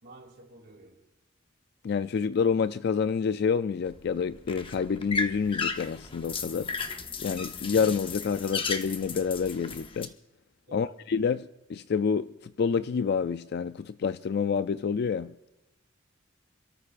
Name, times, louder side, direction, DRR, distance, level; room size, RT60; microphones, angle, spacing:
voice 1, 0.0-1.0 10.7-11.0, right 1 dB, 55° right, 2.9 m, -49 dB
voice 2, 1.8-6.7 7.2-10.1 10.7-15.3, left 6 dB, 55° left, 0.3 m, -28 dB
sound 1, 3.9-10.1, left 4 dB, 25° left, 0.8 m, -35 dB
27.0 x 13.5 x 2.5 m
head